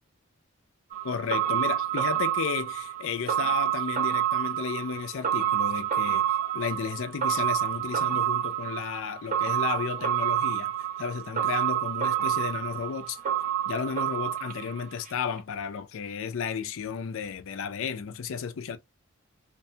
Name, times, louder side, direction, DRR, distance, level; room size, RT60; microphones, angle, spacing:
sound 1, 0.9-15.1 15.4-15.5, right 11 dB, 35° right, 0.6 m, -28 dB
voice 1, 1.0-10.7 11.0-13.2 13.7-18.8, left 6 dB, 65° left, 0.4 m, -33 dB
2.5 x 2.2 x 2.6 m
head